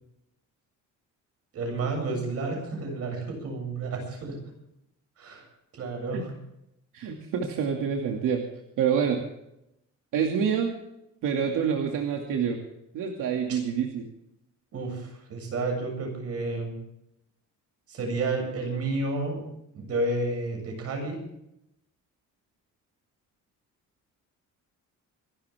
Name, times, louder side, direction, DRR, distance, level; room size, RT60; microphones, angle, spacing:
voice 1, 1.5-4.4 5.2-5.4 5.7-6.3 13.5-13.6 14.7-16.7 17.9-19.4 19.7-21.2, right 2 dB, 50° right, 2 dB, 7.5 m, -31 dB
voice 2, 6.9-8.4 8.8-9.2 10.1-10.8 11.2-12.6 12.9-14.0, right 7 dB, 80° right, 1 dB, 2.5 m, -27 dB
27.0 x 12.5 x 3.6 m, 0.81 s
cardioid pair, 175°, 31 cm